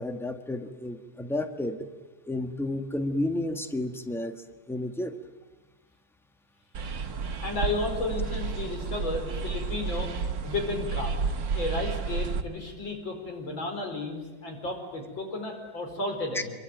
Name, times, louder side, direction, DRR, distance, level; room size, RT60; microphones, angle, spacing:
voice 1, 0.0-1.9 2.3-5.2 16.3-16.4, left 1 dB, ahead, 7 dB, 1.3 m, -31 dB
sound 1, 6.7-12.4, right 5 dB, 70° right, 2.2 m, -31 dB
voice 2, 7.4-10.1 10.4-11.1 11.5-16.5, left 2 dB, 90° left, 4 dB, 5.6 m, -33 dB
26.5 x 23.5 x 9.3 m, 1.1 s
omnidirectional pair, 2.1 m